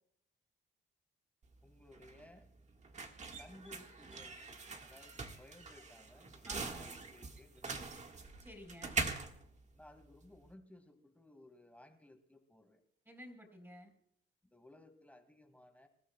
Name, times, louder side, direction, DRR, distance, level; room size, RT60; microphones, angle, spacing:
sound 1, 1.4-10.5, right 4 dB, 35° right, 1.7 m, -43 dB
voice 1, 1.6-2.5 3.4-7.9 9.7-12.8 14.4-15.9, left 1 dB, 5° left, 6 dB, 2.1 m, -59 dB
voice 2, 6.4-6.9 8.4-9.1 13.1-13.9, equal, 10° right, 4 dB, 4.6 m, -53 dB
26.0 x 13.0 x 2.3 m, 0.70 s
cardioid pair, 90°, 20 cm